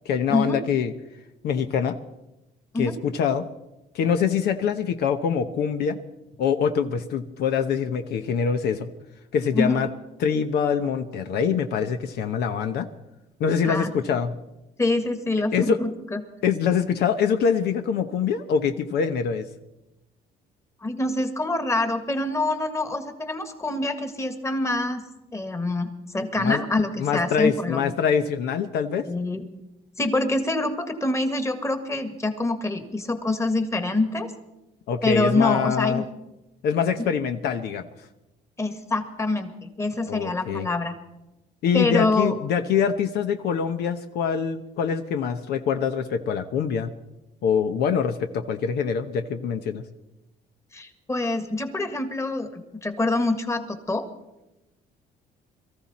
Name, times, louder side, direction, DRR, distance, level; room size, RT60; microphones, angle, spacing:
voice 1, 0.0-0.9 1.4-2.0 2.8-3.5 3.9-6.0 6.4-8.9 9.3-9.9 10.2-12.9 13.4-14.4 15.5-15.8 16.4-19.5 26.4-26.6 27.0-29.1 34.9-36.1 36.6-37.9 40.1-40.7 41.6-46.9 47.4-49.9, left 7 dB, 75° left, 8 dB, 1.0 m, -24 dB
voice 2, 14.8-16.2 20.8-25.0 25.3-27.9 29.0-29.5 30.0-34.3 35.0-36.0 38.6-40.9 41.7-42.3 50.7-54.1, left 2 dB, 15° left, 7 dB, 1.8 m, -25 dB
22.5 x 14.0 x 4.2 m, 0.96 s
cardioid pair, 110°, 17 cm